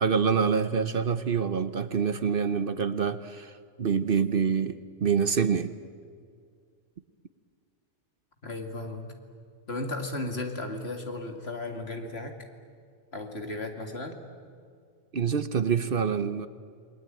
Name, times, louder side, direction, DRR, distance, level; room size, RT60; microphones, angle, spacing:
voice 1, 0.0-3.5 3.8-5.7 15.1-16.5, right 6 dB, 55° right, 12 dB, 1.0 m, -26 dB
voice 2, 8.4-9.2 9.7-12.3 13.1-14.2, left 2 dB, 60° left, 4 dB, 2.7 m, -35 dB
29.0 x 21.0 x 9.1 m, 2.2 s
omnidirectional pair, 1.2 m